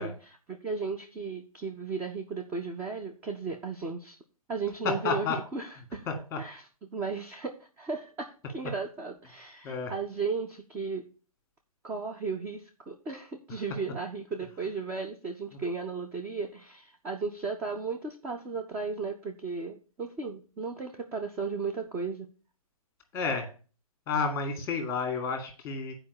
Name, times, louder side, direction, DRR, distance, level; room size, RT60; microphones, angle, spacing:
voice 1, 0.0-4.2 4.5-6.1 6.4-11.1 11.8-22.3, right 4 dB, 10° right, 2 dB, 0.5 m, -35 dB
voice 2, 4.8-5.4 6.3-6.4 9.6-9.9 23.1-23.5 24.1-25.9, left 5 dB, 15° left, 5 dB, 2.0 m, -30 dB
8.5 x 4.9 x 6.8 m, 0.37 s
figure-of-eight pair, 130°, 19 cm